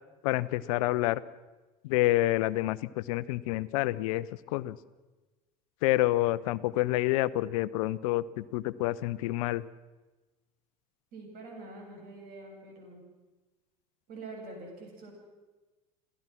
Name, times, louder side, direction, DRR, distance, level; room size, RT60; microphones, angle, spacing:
voice 1, 0.2-1.2 1.8-4.8 5.8-9.6, left 17 dB, 60° left, 18 dB, 0.8 m, -28 dB
voice 2, 11.1-13.0 14.1-15.1, right 2 dB, 50° right, 1 dB, 7.4 m, -45 dB
27.5 x 17.0 x 6.1 m, 1.2 s
figure-of-eight pair, 70°, 20 cm